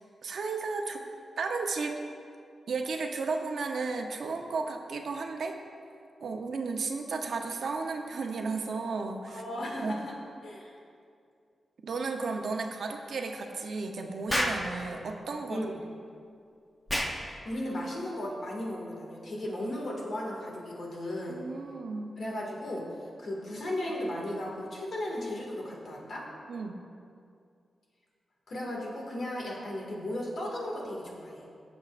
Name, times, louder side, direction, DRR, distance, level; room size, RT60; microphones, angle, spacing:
voice 1, 0.2-1.0 1.4-2.0 2.7-5.6 6.2-9.4 9.8-10.0 11.8-15.7 21.3-22.1 26.5-26.8, right 4 dB, 65° right, 3 dB, 0.8 m, -34 dB
voice 2, 9.3-10.1 10.4-10.8 15.5-15.8 17.2-21.4 22.2-26.2 28.5-31.4, left 1 dB, 55° left, -2 dB, 2.0 m, -36 dB
Explosion, 14.3-14.7 16.9-17.2, equal, 10° left, 0.8 m, -28 dB
16.5 x 7.1 x 2.5 m, 2.3 s
wide cardioid pair, 145°, 0 cm